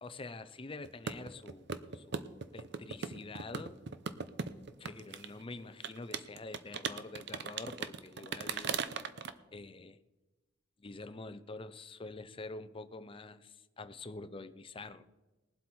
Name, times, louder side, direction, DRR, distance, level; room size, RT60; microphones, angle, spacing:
voice 1, 0.0-1.7 1.9-2.3 2.5-3.8 4.8-8.8 9.5-10.0 10.8-15.0, left 3 dB, 30° left, 0.6 m, -46 dB
sound 1, 0.8-5.2 5.8-9.3, right 5 dB, 65° right, 0.7 m, -38 dB
20.5 x 7.9 x 4.4 m
head